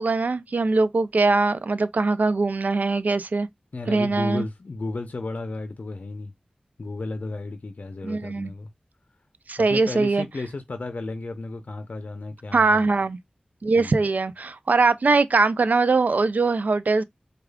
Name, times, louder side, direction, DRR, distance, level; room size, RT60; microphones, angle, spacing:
voice 1, 0.0-3.5 3.9-4.4 8.0-8.5 9.5-10.2 12.5-13.2 13.6-17.0, right 3 dB, 80° right, 0.4 m, -21 dB
voice 2, 3.7-6.3 6.8-8.7 9.6-12.9 13.7-14.0, left 3 dB, 70° left, 0.5 m, -33 dB
4.8 x 2.3 x 2.2 m
wide cardioid pair, 45°, 3 cm